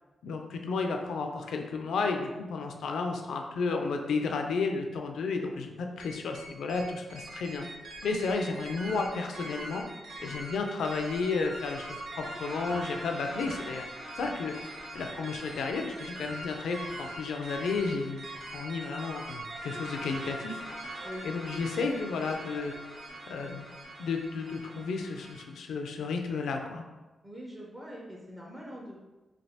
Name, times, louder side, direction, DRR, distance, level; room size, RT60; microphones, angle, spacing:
voice 1, 0.2-7.7 8.0-9.8 10.2-13.8 14.2-18.2 18.5-20.6 21.2-22.8 23.3-23.7 24.0-26.8, left 4 dB, 85° left, 4 dB, 0.4 m, -32 dB
sound 1, 6.0-25.4, right 1 dB, 75° right, 0.6 m, -42 dB
voice 2, 27.2-29.0, equal, 25° right, -3 dB, 0.6 m, -43 dB
3.2 x 2.4 x 2.7 m, 1.1 s
cardioid pair, 55°, 0 cm